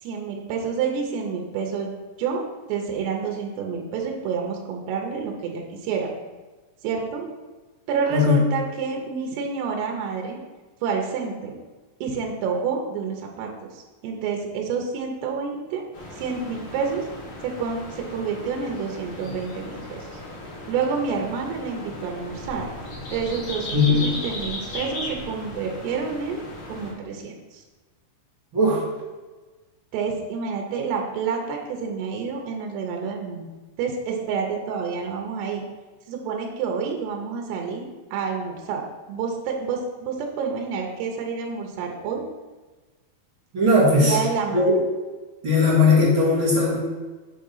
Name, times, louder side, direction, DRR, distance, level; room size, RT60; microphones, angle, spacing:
voice 1, 0.0-6.1 6.8-7.3 7.9-10.4 10.8-11.6 12.0-15.8 16.1-17.1 17.4-20.1 20.7-22.7 23.1-26.4 26.7-27.6 29.9-33.5 33.8-35.6 36.1-42.2 44.0-44.8, right 5 dB, 85° right, 1 dB, 2.9 m, -28 dB
sound 1, 15.9-26.9, left 1 dB, 50° left, 1.6 m, -36 dB
voice 2, 43.5-44.2 44.5-44.7 45.4-46.8, left 2 dB, 40° right, -8 dB, 2.1 m, -18 dB
7.9 x 3.8 x 5.5 m, 1.3 s
omnidirectional pair, 4.7 m